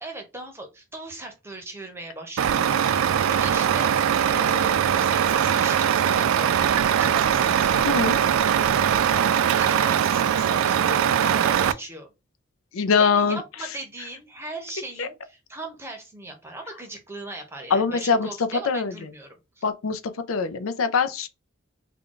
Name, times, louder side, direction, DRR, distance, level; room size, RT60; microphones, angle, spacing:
voice 1, 0.0-7.9 8.8-12.1 13.0-19.7, right 1 dB, 10° right, 0.7 m, -39 dB
Truck, 2.4-11.7, right 8 dB, 80° right, 0.3 m, -21 dB
voice 2, 7.8-8.2 12.7-13.4 15.0-15.1 17.7-18.3 18.7-18.9 19.6-20.0 20.3-21.3, left 5 dB, 80° left, 0.5 m, -22 dB
3.7 x 2.2 x 3.7 m
head